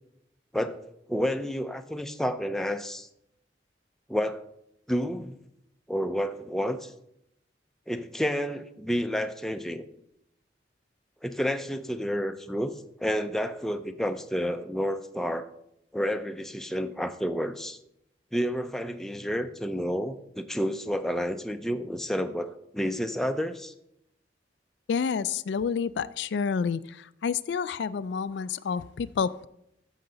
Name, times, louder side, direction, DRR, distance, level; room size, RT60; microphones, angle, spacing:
voice 1, 1.1-3.1 4.1-4.4 4.9-5.3 5.9-6.9 7.9-9.9 11.2-12.7 13.0-15.5 15.9-17.8 18.3-23.7, equal, ahead, 7 dB, 0.5 m, -30 dB
voice 2, 24.9-29.5, left 6 dB, 70° left, 15 dB, 0.3 m, -29 dB
13.5 x 6.5 x 3.9 m, 0.78 s
head